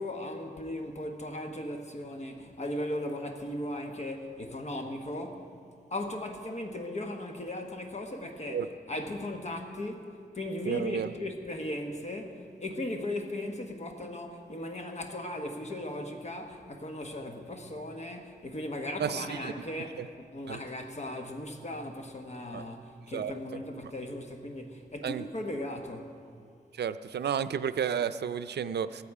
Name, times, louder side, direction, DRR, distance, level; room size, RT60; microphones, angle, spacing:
voice 1, 0.0-5.5 5.9-26.1, left 1 dB, 40° left, 1.3 m, -37 dB
voice 2, 10.7-11.1 19.0-19.5 20.0-20.1 20.5-20.6 22.5-22.7 23.1-23.3 25.0-25.3 26.8-29.0, right 8 dB, 90° right, 0.5 m, -31 dB
15.5 x 14.0 x 4.8 m
wide cardioid pair, 140°, 17 cm